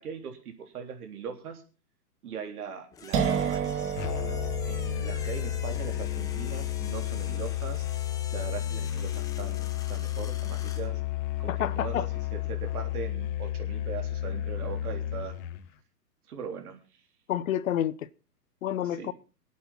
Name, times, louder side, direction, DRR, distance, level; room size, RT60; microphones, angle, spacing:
voice 1, 0.0-1.6 2.2-3.7 4.7-7.8 8.3-11.0 11.4-15.4 16.3-16.8 19.0-19.1, right 6 dB, 65° right, 3.6 m, -40 dB
sound 1, 2.9-10.9, left 7 dB, 5° left, 0.6 m, -47 dB
sound 2, 3.1-10.7, right 7 dB, 25° right, 1.6 m, -34 dB
Musical instrument, 4.0-15.7, left 13 dB, 30° left, 1.0 m, -32 dB
voice 2, 11.5-12.1 17.3-18.1 18.6-19.1, left 11 dB, 55° left, 0.8 m, -29 dB
23.5 x 8.5 x 4.1 m
hypercardioid pair, 130°, 49 cm